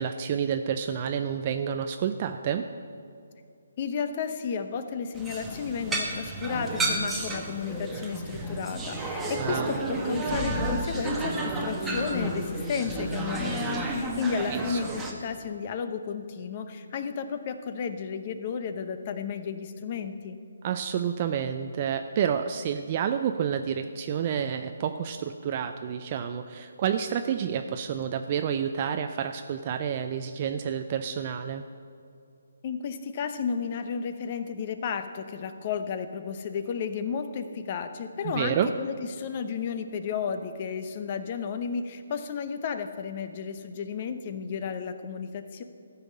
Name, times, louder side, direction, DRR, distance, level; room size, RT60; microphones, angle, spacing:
voice 1, 0.0-2.7 9.4-9.8 14.5-14.8 20.6-31.6 38.2-38.7, right 8 dB, 35° right, 7 dB, 0.4 m, -29 dB
voice 2, 3.8-20.4 32.6-45.6, left 6 dB, 35° left, 9 dB, 0.8 m, -33 dB
sound 1, 5.1-15.1, right 1 dB, 5° right, 1.1 m, -31 dB
13.0 x 5.7 x 8.4 m, 2.4 s
hypercardioid pair, 160°, 0 cm